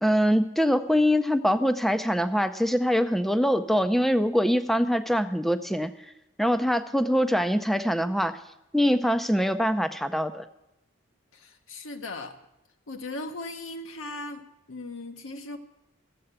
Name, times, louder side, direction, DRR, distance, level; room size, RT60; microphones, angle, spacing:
voice 1, 0.0-5.9 6.4-8.4 8.7-10.5, equal, ahead, 11 dB, 0.4 m, -23 dB
voice 2, 11.3-12.4 12.9-15.6, left 2 dB, 70° left, 5 dB, 0.8 m, -38 dB
13.5 x 7.7 x 7.9 m, 0.91 s
head